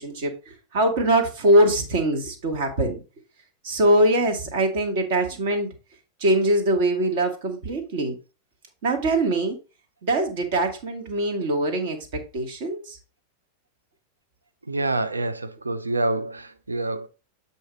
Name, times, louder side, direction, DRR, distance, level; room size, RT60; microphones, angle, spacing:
voice 1, 0.0-3.0 3.6-5.7 6.2-8.2 8.8-9.6 10.0-12.0 12.3-13.0, right 1 dB, 50° right, 1.5 m, -22 dB
voice 2, 14.7-17.1, right 2 dB, 80° right, 0.6 m, -27 dB
7.7 x 2.7 x 5.1 m
figure-of-eight pair, 90°, 0 cm